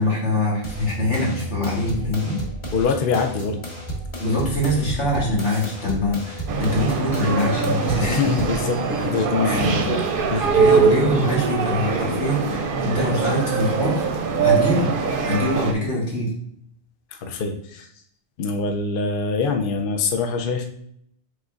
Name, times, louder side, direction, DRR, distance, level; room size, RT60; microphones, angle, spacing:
voice 1, 0.0-2.4 4.2-8.2 9.4-9.6 10.5-14.1 14.4-14.9 15.2-16.3, left 1 dB, 85° left, -5 dB, 2.0 m, -23 dB
sound 1, 0.6-8.6, right 1 dB, 30° left, 0.8 m, -33 dB
sound 2, 0.8-11.7 12.1-13.5, left 1 dB, 20° right, 0.7 m, -40 dB
voice 2, 2.7-3.6 8.0-10.0 10.3-10.5 17.1-17.9 18.4-20.6, left 4 dB, 60° left, 4 dB, 0.6 m, -24 dB
sound 3, 6.5-15.7, right 5 dB, 60° right, 0.7 m, -22 dB
5.1 x 3.6 x 2.4 m, 0.69 s
omnidirectional pair, 1.2 m